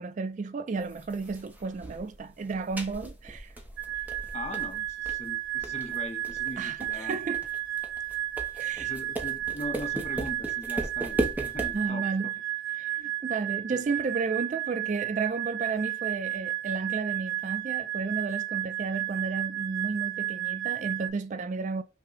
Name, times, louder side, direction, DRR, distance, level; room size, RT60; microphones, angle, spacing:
voice 1, 0.0-3.5 6.6-7.5 8.6-8.9 11.7-12.3 12.8-21.8, right 4 dB, 40° right, 0.3 m, -32 dB
sound 1, 0.8-11.9, right 1 dB, 10° right, 0.7 m, -37 dB
sound 2, 3.8-21.1, right 13 dB, 85° right, 1.0 m, -33 dB
voice 2, 4.3-7.3 8.8-12.1 13.7-13.8, left 1 dB, 35° left, 0.7 m, -40 dB
6.1 x 2.1 x 3.8 m
head